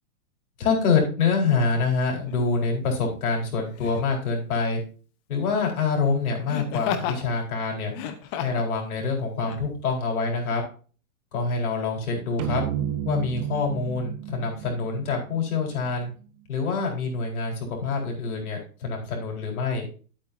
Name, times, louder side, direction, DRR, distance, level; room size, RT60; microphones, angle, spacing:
voice 1, 0.6-4.8 5.3-7.9 8.4-10.6 11.3-12.6 13.0-16.1 16.5-19.9, left 4 dB, 80° left, 0 dB, 4.4 m, -26 dB
Laughter, 2.3-2.4 3.8-4.1 6.5-7.2 7.9-8.7 9.4-9.6, left 9 dB, 25° left, 0.8 m, -31 dB
sound 1, 12.4-15.9, right 10 dB, 25° right, 0.5 m, -32 dB
11.0 x 8.5 x 2.6 m, 0.39 s
hypercardioid pair, 155°, 43 cm